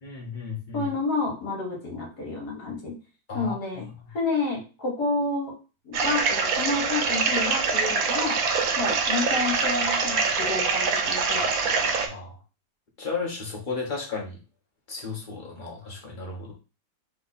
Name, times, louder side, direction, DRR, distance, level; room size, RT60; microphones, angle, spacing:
voice 1, 0.0-0.9 3.3-3.8 12.1-12.4 13.0-14.4 14.9-16.5, left 4 dB, 30° left, -1 dB, 1.1 m, -34 dB
voice 2, 0.7-2.9 3.3-3.9 4.1-5.5 5.8-8.4 8.8-12.0, left 3 dB, 55° left, -1 dB, 2.0 m, -30 dB
sound 1, 5.9-12.1, right 4 dB, 60° right, 1.0 m, -24 dB
3.5 x 3.1 x 4.0 m, 0.33 s
omnidirectional pair, 2.0 m